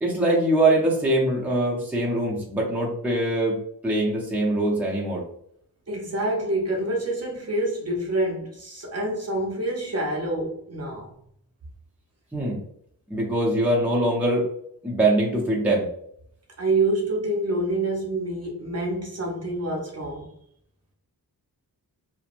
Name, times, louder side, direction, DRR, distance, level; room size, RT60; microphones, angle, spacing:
voice 1, 0.0-3.6 3.8-5.2 12.3-12.6 13.1-14.5 14.8-15.9, right 1 dB, 5° right, 0.6 m, -23 dB
voice 2, 5.9-11.2 16.6-20.3, right 2 dB, 40° right, 0.7 m, -27 dB
3.0 x 2.2 x 2.5 m
wide cardioid pair, 110°, 38 cm